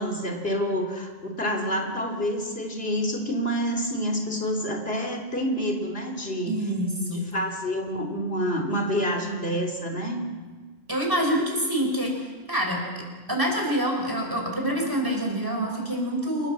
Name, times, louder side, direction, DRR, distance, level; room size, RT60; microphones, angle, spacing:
voice 1, 0.0-6.5 7.1-10.2, equal, 70° left, 1 dB, 3.2 m, -28 dB
voice 2, 6.5-7.3 10.9-13.0 13.3-16.5, equal, 20° right, 1 dB, 5.6 m, -26 dB
28.5 x 16.0 x 7.5 m, 1.4 s
omnidirectional pair, 1.1 m